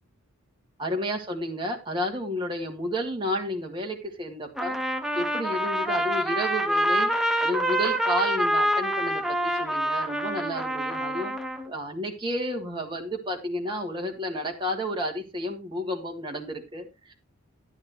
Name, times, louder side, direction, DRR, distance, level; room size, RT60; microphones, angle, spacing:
voice 1, 0.8-4.8 5.1-7.1 7.4-11.3 11.7-17.1, equal, 20° right, 1 dB, 2.0 m, -31 dB
Trumpet, 4.6-11.7, right 1 dB, ahead, 0.6 m, -26 dB
11.0 x 10.5 x 3.1 m, 0.25 s
head